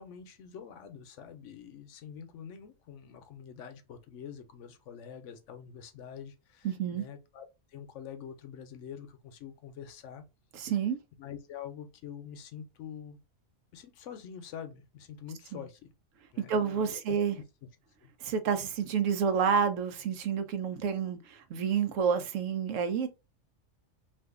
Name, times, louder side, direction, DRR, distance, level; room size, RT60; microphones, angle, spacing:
voice 1, 0.0-10.2 11.2-13.2 13.7-15.9 16.3-17.0 18.0-18.1, left 8 dB, 75° left, 0.9 m, -46 dB
voice 2, 6.6-7.0 10.5-11.0 15.5-15.6 16.4-17.4 18.2-23.1, right 7 dB, 80° right, 1.0 m, -29 dB
2.6 x 2.4 x 3.6 m
omnidirectional pair, 1.3 m